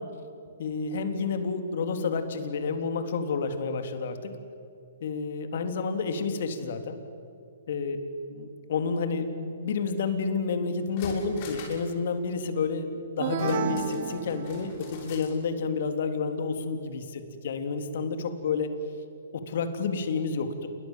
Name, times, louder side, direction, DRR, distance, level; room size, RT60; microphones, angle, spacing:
voice 1, 0.6-4.3 5.0-7.0 7.7-8.0 8.3-18.7 19.3-20.7, left 5 dB, 60° left, 7 dB, 3.4 m, -30 dB
sound 1, 10.8-11.9 12.2-12.3 13.4-15.4 15.7-15.8, left 3 dB, 40° left, 6.4 m, -44 dB
sound 2, 13.2-15.0, right 7 dB, 45° right, 2.8 m, -32 dB
29.0 x 23.0 x 7.6 m, 2.5 s
hypercardioid pair, 130°, 0 cm